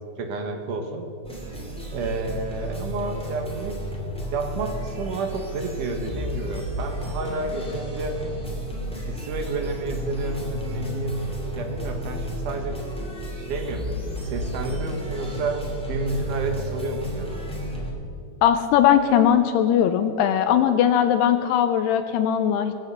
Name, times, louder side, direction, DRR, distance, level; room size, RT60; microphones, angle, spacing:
voice 1, 0.2-1.1 1.9-3.8 4.3-8.2 9.0-11.2 11.5-12.8 13.4-14.0 14.2-15.6 15.9-17.4, right 3 dB, 75° right, 4 dB, 1.9 m, -30 dB
sound 1, 1.2-17.9, equal, 10° left, 0.4 m, -32 dB
voice 2, 18.4-22.7, left 9 dB, 85° left, 8 dB, 2.4 m, -19 dB
21.5 x 7.6 x 6.7 m, 2.7 s
omnidirectional pair, 5.2 m